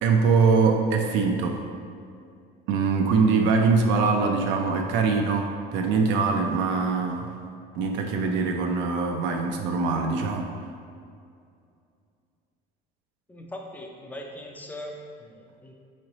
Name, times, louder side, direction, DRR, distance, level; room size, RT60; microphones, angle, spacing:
voice 1, 0.0-1.6 2.7-7.3 7.7-10.5, right 4 dB, 70° right, 2 dB, 0.4 m, -23 dB
voice 2, 13.3-15.7, left 1 dB, 10° left, 1 dB, 0.4 m, -40 dB
3.7 x 3.1 x 4.0 m, 2.4 s
cardioid pair, 120°, 20 cm